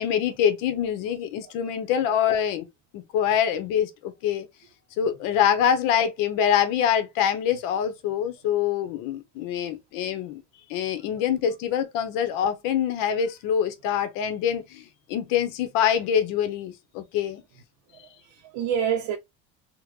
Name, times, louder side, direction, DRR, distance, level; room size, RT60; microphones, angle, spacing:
voice 1, 0.0-2.6 2.9-4.5 5.0-10.4 10.7-17.4, left 9 dB, 70° left, 0.9 m, -25 dB
voice 2, 5.3-5.7 11.1-11.2 17.9-19.2, right 8 dB, 60° right, 0.6 m, -30 dB
3.7 x 2.2 x 3.1 m
cardioid pair, 175°, 34 cm